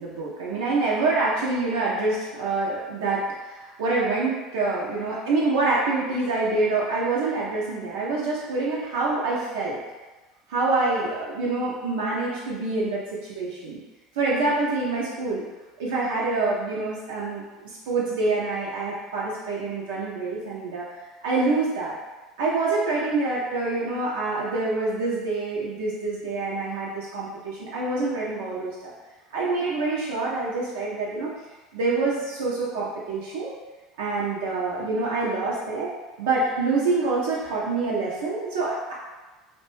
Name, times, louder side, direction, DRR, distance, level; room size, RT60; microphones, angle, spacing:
voice 1, 0.0-9.8 10.5-13.8 14.2-15.4 15.8-20.9 21.2-21.9 22.4-28.9 29.3-31.3 31.7-33.5 34.0-35.9 36.2-38.9, right 3 dB, 70° right, -6 dB, 0.4 m, -26 dB
2.5 x 2.1 x 3.0 m, 1.2 s
figure-of-eight pair, 70°, 0 cm